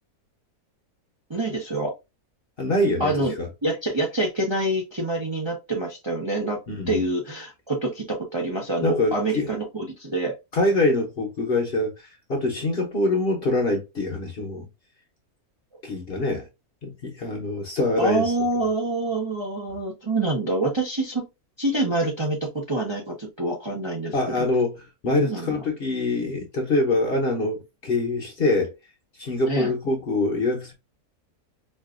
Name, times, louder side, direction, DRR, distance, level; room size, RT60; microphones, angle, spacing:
voice 1, 1.3-1.9 3.0-3.3 3.6-6.6 6.9-10.3 18.0-21.3 21.6-24.5 25.1-25.6 29.5-29.7, right 2 dB, 25° right, 0.7 m, -26 dB
voice 2, 2.6-3.5 6.7-7.0 8.8-9.5 10.5-14.7 15.8-16.5 16.8-18.3 24.1-28.7 29.2-30.7, left 2 dB, 45° left, 0.9 m, -24 dB
4.3 x 2.5 x 2.4 m
omnidirectional pair, 1.6 m